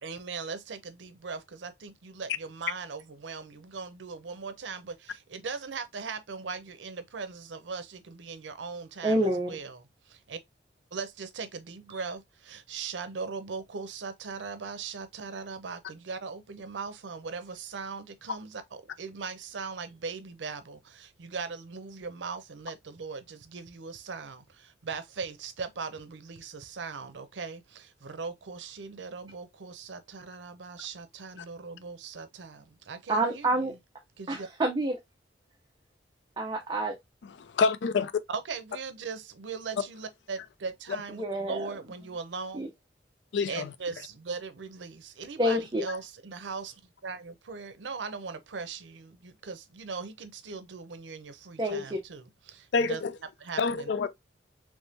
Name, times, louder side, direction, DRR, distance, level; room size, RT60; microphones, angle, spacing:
voice 1, 0.0-10.4 10.9-33.7 34.2-34.5 38.3-42.7 43.5-53.0 53.4-53.9, right 5 dB, 90° right, 0.6 m, -39 dB
voice 2, 9.0-9.5 11.9-12.0 33.1-33.7 34.3-35.0 36.4-36.9 41.1-41.7 42.5-42.7 45.4-45.8 51.6-52.0, right 1 dB, 25° right, 0.6 m, -28 dB
voice 3, 37.4-38.1 43.3-43.7 52.7-53.1 53.6-54.1, left 4 dB, 80° left, 0.4 m, -27 dB
3.5 x 3.1 x 2.6 m
head